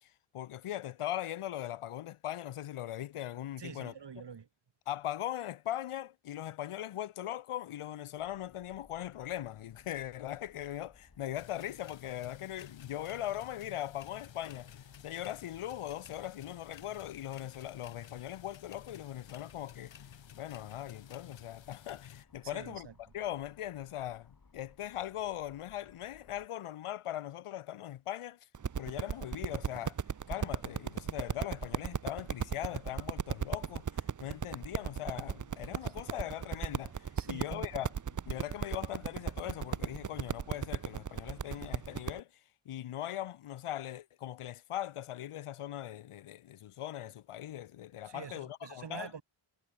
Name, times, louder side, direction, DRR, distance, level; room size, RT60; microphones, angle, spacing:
voice 1, 0.0-3.9 4.9-14.7 15.0-19.9 20.3-22.9 23.1-28.5 28.8-30.0 30.3-37.9 38.3-42.4 42.7-49.1, left 12 dB, 90° left, 0.8 m, -40 dB
voice 2, 3.6-4.5 22.4-23.0 35.8-35.9 37.2-37.7 48.0-49.2, right 6 dB, 55° right, 1.9 m, -46 dB
sound 1, 8.2-26.5, left 4 dB, 40° left, 4.7 m, -62 dB
sound 2, 11.3-22.2, left 10 dB, 65° left, 0.9 m, -53 dB
sound 3, 28.5-42.2, right 7 dB, 40° right, 0.7 m, -36 dB
wide cardioid pair, 80°, 50 cm